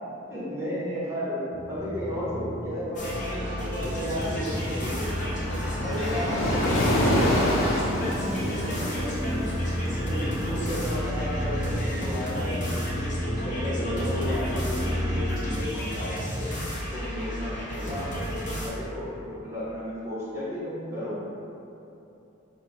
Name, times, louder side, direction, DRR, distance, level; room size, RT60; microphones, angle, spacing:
voice 1, 0.3-1.4 1.7-5.2 5.8-7.6 7.9-9.4 10.1-12.8 13.4-16.5 16.9-18.1 18.4-21.1, left 1 dB, 15° right, -9 dB, 0.9 m, -33 dB
sound 1, 1.5-15.3, equal, 10° left, 0.4 m, -32 dB
sound 2, 3.0-18.7, equal, 40° left, 0.8 m, -33 dB
Waves surf, 4.5-11.6, left 1 dB, 75° left, 0.7 m, -28 dB
4.6 x 2.2 x 4.7 m, 2.9 s
head